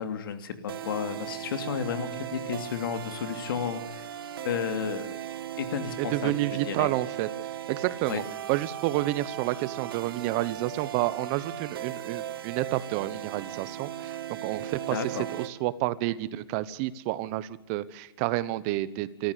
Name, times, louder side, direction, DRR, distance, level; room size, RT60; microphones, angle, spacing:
voice 1, 0.0-4.1 4.4-5.1 5.6-6.9 8.1-8.2 14.9-15.2, left 7 dB, 65° left, 8 dB, 2.9 m, -32 dB
sound 1, 0.7-15.5, right 11 dB, 70° right, 1.9 m, -37 dB
voice 2, 6.0-7.3 7.7-8.2 8.5-15.0 15.4-19.3, right 16 dB, 40° right, 17 dB, 1.0 m, -30 dB
26.0 x 14.5 x 8.2 m, 0.92 s
hypercardioid pair, 145°, 12 cm